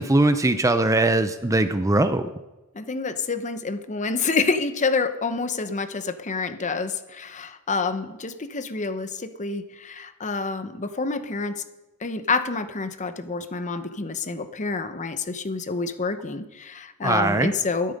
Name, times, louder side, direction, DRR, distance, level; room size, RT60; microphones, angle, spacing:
voice 1, 0.0-2.3 17.0-17.5, right 2 dB, 15° right, 10 dB, 0.5 m, -21 dB
voice 2, 2.7-11.6 12.0-17.9, left 4 dB, 35° left, 10 dB, 0.8 m, -28 dB
13.0 x 11.5 x 5.3 m, 1.0 s
head